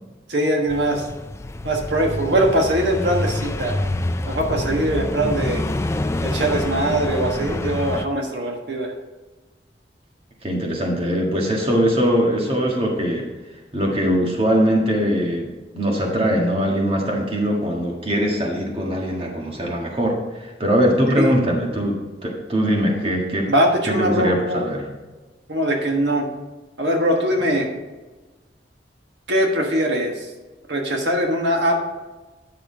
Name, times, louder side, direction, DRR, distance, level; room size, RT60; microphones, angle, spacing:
voice 1, 0.3-1.0 1.6-3.8 4.2-5.6 6.2-8.9 21.2-21.4 23.5-24.6 25.5-26.3 26.8-27.7 29.3-30.3 30.7-31.8, right 1 dB, 80° right, 1 dB, 1.5 m, -21 dB
sound 1, 0.7-8.1, left 1 dB, 15° left, 0.3 m, -27 dB
voice 2, 10.4-13.3 13.7-23.5 23.9-24.9, equal, 35° right, 0 dB, 1.6 m, -21 dB
9.9 x 6.7 x 3.8 m, 1.2 s
head